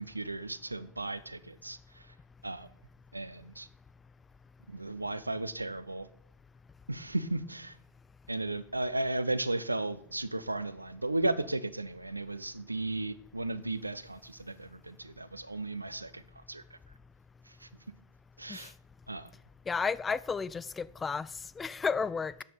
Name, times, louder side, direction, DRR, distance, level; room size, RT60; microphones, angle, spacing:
voice 1, 0.0-2.1 2.4-2.7 3.1-3.7 4.7-6.1 6.9-7.8 8.3-16.2 16.5-16.8 17.5-17.7 18.4-18.7 19.1-19.3, right 2 dB, 85° right, 0.5 m, -35 dB
voice 2, 19.7-21.3 21.6-22.3, left 5 dB, 15° left, 0.3 m, -32 dB
9.4 x 6.9 x 5.4 m
figure-of-eight pair, 90°, 0 cm